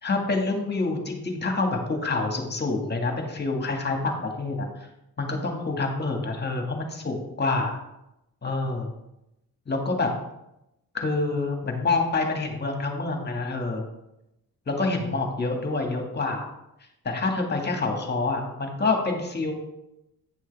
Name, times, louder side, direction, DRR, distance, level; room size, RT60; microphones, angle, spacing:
voice 1, 0.0-4.9 5.2-7.8 8.4-8.9 9.7-10.1 10.9-13.9 14.7-16.5 17.1-19.5, left 3 dB, 30° left, 2 dB, 1.8 m, -27 dB
9.2 x 6.3 x 3.4 m, 0.87 s
cardioid pair, 90°, 35 cm